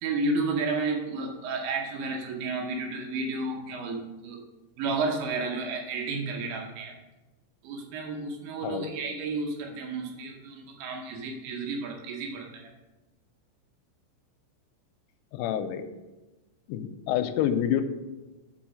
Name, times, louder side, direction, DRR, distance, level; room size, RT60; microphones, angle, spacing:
voice 1, 0.0-4.4 4.8-7.0 7.6-12.7, right 3 dB, 75° right, 1 dB, 2.9 m, -32 dB
voice 2, 15.3-15.9 16.7-17.8, left 10 dB, 85° left, 9 dB, 3.0 m, -28 dB
6.2 x 6.0 x 6.1 m, 1.1 s
omnidirectional pair, 5.8 m